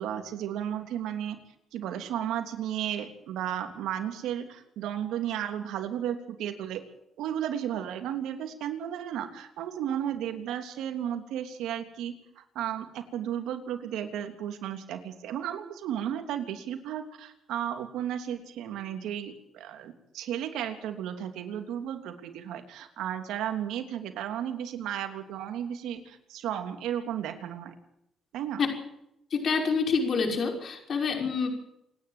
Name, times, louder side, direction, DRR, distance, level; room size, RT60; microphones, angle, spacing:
voice 1, 0.0-1.4 1.7-6.8 7.2-27.7 28.3-28.6, right 10 dB, 85° right, 6 dB, 3.1 m, -34 dB
voice 2, 29.3-31.5, left 5 dB, 55° left, 3 dB, 5.6 m, -27 dB
27.5 x 11.0 x 9.2 m, 0.79 s
cardioid pair, 90°, 0 cm